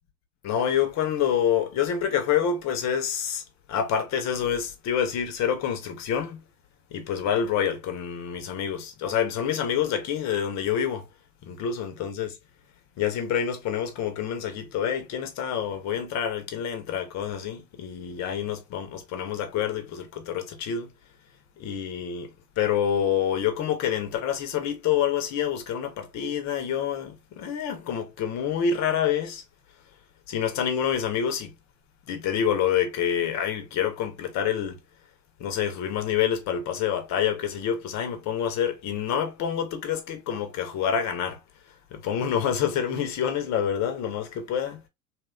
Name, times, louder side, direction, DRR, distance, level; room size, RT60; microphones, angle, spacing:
voice 1, 0.4-3.4 3.7-6.4 6.9-11.1 11.4-12.3 13.0-20.9 21.6-22.3 22.6-29.4 30.3-31.5 32.1-34.8 35.4-41.4 41.9-44.8, left 8 dB, 35° left, 0.8 m, -27 dB
2.8 x 2.3 x 2.3 m
hypercardioid pair, 85°, 45 cm